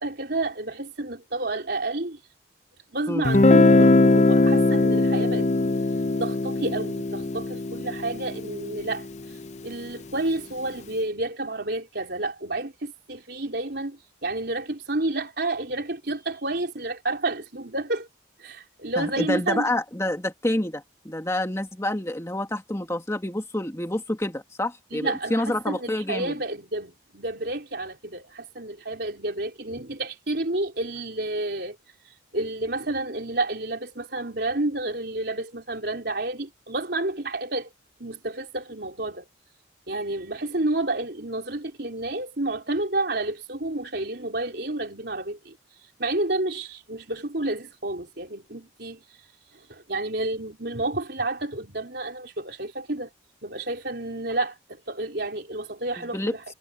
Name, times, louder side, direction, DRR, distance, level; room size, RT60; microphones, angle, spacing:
voice 1, 0.0-2.2 2.9-5.5 6.2-9.1 9.6-18.1 18.4-19.7 24.9-31.8 32.3-37.7 38.0-39.3 39.9-45.6 46.0-49.0 49.7-53.1 53.4-56.4, right 2 dB, 60° right, 4.3 m, -30 dB
Guitar, 3.2-9.0, left 2 dB, 35° left, 0.6 m, -20 dB
voice 2, 19.0-26.3 56.1-56.3, left 1 dB, 15° left, 1.9 m, -28 dB
head